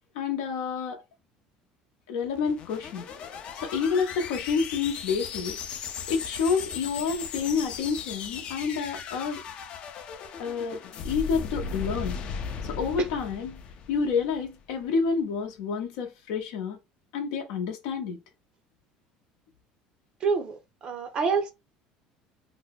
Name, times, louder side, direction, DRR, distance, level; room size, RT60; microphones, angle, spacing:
voice 1, 0.1-1.0 2.1-3.0 3.5-5.6 6.1-9.4 10.4-12.2 12.6-13.6 13.9-16.8 17.1-18.2, left 5 dB, 85° left, 0.7 m, -29 dB
sound 1, 2.2-14.6, left 6 dB, 40° left, 0.4 m, -37 dB
voice 2, 20.2-21.5, right 5 dB, 35° right, 0.4 m, -27 dB
2.7 x 2.1 x 3.9 m
cardioid pair, 150°, 3 cm